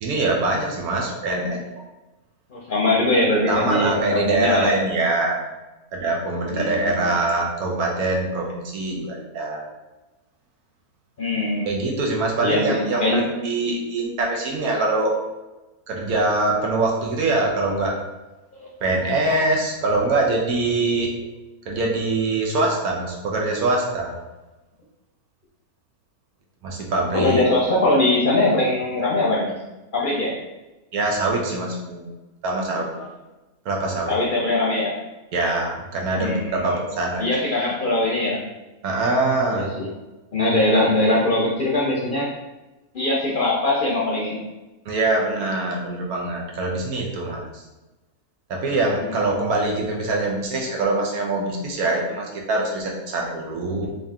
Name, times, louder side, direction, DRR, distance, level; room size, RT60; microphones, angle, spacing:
voice 1, 0.0-1.6 3.5-5.4 5.9-9.6 11.7-15.1 15.9-17.9 18.8-21.1 21.7-24.1 26.6-27.4 30.9-32.1 32.4-32.9 33.6-34.1 35.3-37.2 38.8-39.7 44.9-47.6 48.5-53.9, right 2 dB, 85° right, -1 dB, 1.3 m, -23 dB
voice 2, 2.5-4.8 6.5-7.1 11.2-11.7 12.4-13.3 18.6-18.7 19.3-19.4 27.1-29.5 29.9-30.4 34.1-35.0 36.2-36.8 37.2-38.4 39.5-39.9 40.3-42.3 42.9-44.4 49.0-49.4, left 2 dB, 50° left, -4 dB, 0.7 m, -21 dB
3.7 x 2.7 x 3.5 m, 1.1 s
omnidirectional pair, 1.5 m